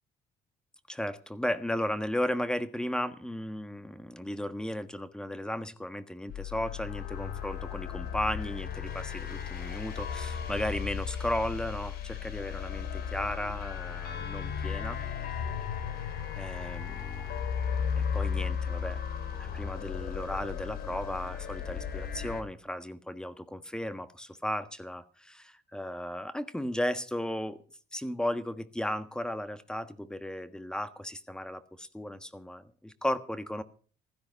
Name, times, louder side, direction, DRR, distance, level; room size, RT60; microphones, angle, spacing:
voice 1, 0.9-15.0 16.4-17.3 18.1-19.0 19.3-27.6 27.9-33.6, left 1 dB, 5° left, 12 dB, 1.4 m, -35 dB
sound 1, 6.3-22.4, left 7 dB, 65° left, 2.8 m, -35 dB
15.5 x 13.0 x 5.3 m, 0.41 s
cardioid pair, 110°, 17 cm